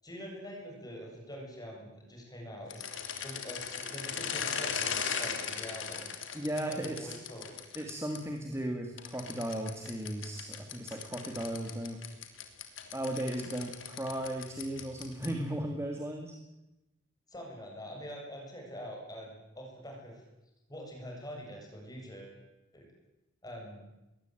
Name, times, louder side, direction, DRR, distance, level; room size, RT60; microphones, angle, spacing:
voice 1, 0.0-2.9 3.2-6.0 6.6-7.6 17.3-20.2 20.7-22.4 22.7-22.8 23.4-23.8, equal, 20° left, 0 dB, 7.5 m, -45 dB
sound 1, 2.7-8.2 9.0-15.5, left 7 dB, 75° left, 3.4 m, -38 dB
voice 2, 6.3-7.1 7.8-12.0 12.9-16.3, right 1 dB, 15° right, 3 dB, 2.3 m, -36 dB
21.5 x 19.0 x 9.2 m, 0.99 s
head